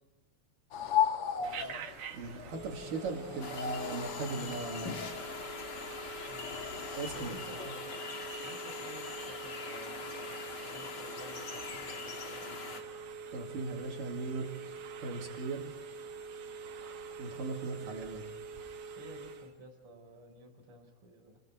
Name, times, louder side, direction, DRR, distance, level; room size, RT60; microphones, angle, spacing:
sound 1, 0.7-7.7, left 8 dB, 70° left, 1.4 m, -37 dB
voice 1, 1.4-1.9 6.3-6.7 7.1-12.9 17.6-18.0 19.0-21.4, right 1 dB, 40° right, 0 dB, 5.1 m, -53 dB
Telephone, 1.4-19.5, right 5 dB, 85° right, 3.6 m, -45 dB
voice 2, 2.1-5.0 6.9-7.4 13.3-14.5 15.0-15.7 17.2-18.3, right 3 dB, 65° right, 2 dB, 3.8 m, -38 dB
sound 2, 3.4-12.8, left 5 dB, 50° left, 1.2 m, -42 dB
29.5 x 22.5 x 4.6 m, 1.2 s
omnidirectional pair, 4.2 m